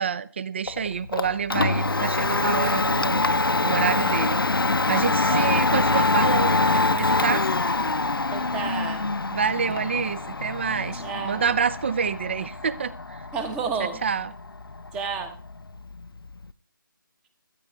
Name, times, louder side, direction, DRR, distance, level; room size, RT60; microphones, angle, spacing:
voice 1, 0.0-3.3 3.6-7.4 9.3-13.2 13.8-14.3, right 6 dB, 30° right, 17 dB, 0.6 m, -27 dB
Domestic sounds home sounds, 0.7-16.5, left 3 dB, 90° left, 0.8 m, -25 dB
voice 2, 5.3-5.7 8.3-9.1 11.0-11.5 13.3-14.0 14.9-15.3, right 6 dB, 10° right, 8 dB, 1.0 m, -31 dB
15.5 x 14.5 x 3.5 m, 0.38 s
figure-of-eight pair, 165°, 12 cm